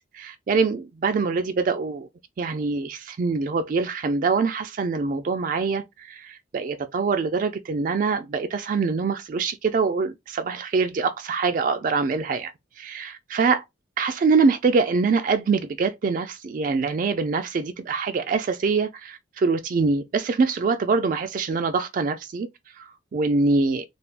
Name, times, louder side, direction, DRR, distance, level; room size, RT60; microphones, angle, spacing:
voice 1, 0.1-2.1 2.4-12.5 12.8-13.6 14.0-22.5 22.8-23.8, right 4 dB, 45° right, 0.3 m, -24 dB
3.3 x 2.2 x 2.4 m
head